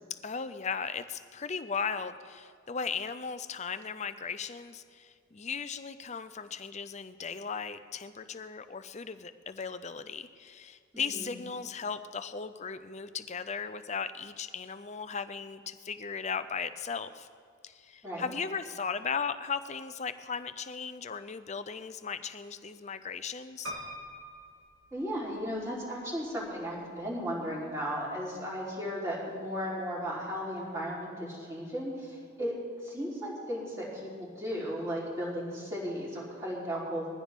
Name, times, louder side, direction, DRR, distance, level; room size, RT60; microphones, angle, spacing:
voice 1, 0.1-17.3 17.6-23.7, left 6 dB, 30° left, 11 dB, 0.5 m, -37 dB
voice 2, 10.9-11.3 18.0-18.3 24.9-32.6 32.8-37.1, equal, 15° right, -6 dB, 3.8 m, -35 dB
Piano, 23.6-25.6 26.2-27.0 27.3-27.4 27.6-27.7, equal, 80° right, 3.0 m, -44 dB
21.5 x 15.0 x 3.7 m, 2.1 s
head